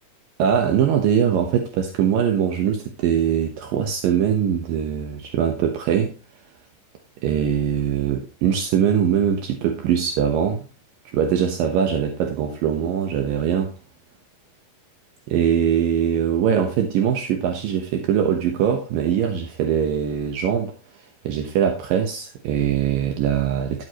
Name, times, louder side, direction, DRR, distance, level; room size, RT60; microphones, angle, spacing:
voice 1, 0.4-6.1 7.2-10.6 11.1-13.7 15.3-20.7 21.2-23.8, right 8 dB, 75° right, 2.7 m, -22 dB
12.5 x 7.8 x 3.0 m
omnidirectional pair, 4.2 m